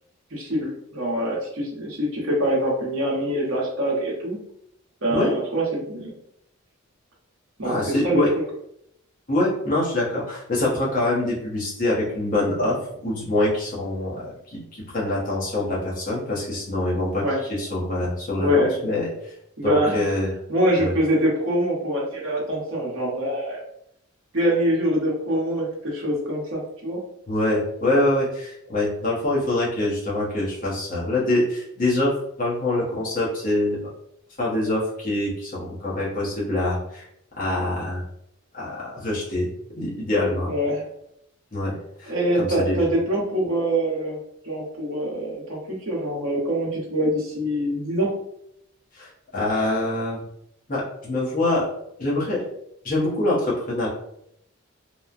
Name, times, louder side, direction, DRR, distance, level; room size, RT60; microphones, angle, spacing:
voice 1, 0.3-4.4 5.0-6.1 7.6-8.2 17.2-17.4 18.4-18.7 19.6-20.0 20.5-23.6 24.3-27.0 40.5-40.8 42.1-44.2 44.4-48.1, equal, 60° right, -3 dB, 0.9 m, -24 dB
voice 2, 7.6-8.3 9.3-17.2 17.5-19.3 19.6-20.3 20.8-20.9 27.3-33.8 34.4-37.1 37.4-38.0 38.5-39.5 39.8-40.5 41.5-42.1 42.4-42.8 48.9-50.2 50.7-51.7 52.0-52.5 52.8-53.9, left 1 dB, 35° left, -5 dB, 0.8 m, -25 dB
3.0 x 2.1 x 2.4 m, 0.75 s
head